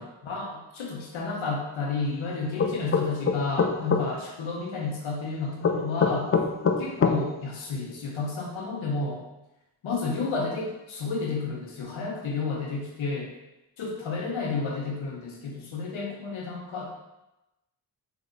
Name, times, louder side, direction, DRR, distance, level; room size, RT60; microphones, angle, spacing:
voice 1, 0.0-6.3 6.8-9.2 9.8-13.3 13.8-17.0, left 4 dB, 85° left, -1 dB, 0.9 m, -31 dB
sound 1, 2.6-4.0 5.6-7.2, left 5 dB, 30° left, 0.4 m, -22 dB
3.0 x 2.9 x 3.8 m, 0.95 s
cardioid pair, 60°, 46 cm